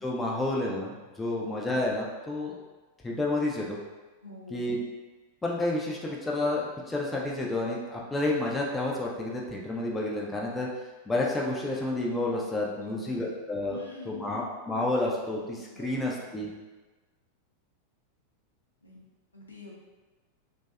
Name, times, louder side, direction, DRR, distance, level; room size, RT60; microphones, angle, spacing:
voice 1, 0.0-2.6 3.0-3.8 4.5-4.8 5.4-10.7 11.1-13.8 14.1-16.5, left 2 dB, 10° left, -3 dB, 0.3 m, -30 dB
voice 2, 4.2-4.7 12.8-13.3 13.7-14.5 15.7-16.1 18.8-19.0 19.3-19.8, left 2 dB, 80° left, -5 dB, 0.5 m, -46 dB
2.5 x 2.1 x 2.3 m, 1.2 s
figure-of-eight pair, 90°, 0 cm